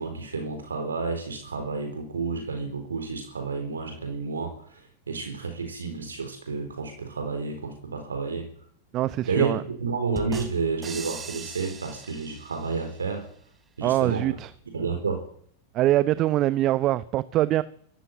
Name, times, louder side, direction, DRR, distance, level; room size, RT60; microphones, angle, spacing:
voice 1, 0.0-8.5 9.3-13.3 13.8-14.2 14.7-15.3, right 4 dB, 70° right, 4.1 m, -30 dB
voice 2, 8.9-9.6 13.8-14.5 15.7-17.6, right 15 dB, 35° right, 1.0 m, -23 dB
sound 1, 10.2-13.0, right 6 dB, 20° right, 3.2 m, -39 dB
25.0 x 14.0 x 9.4 m
figure-of-eight pair, 90°, 0 cm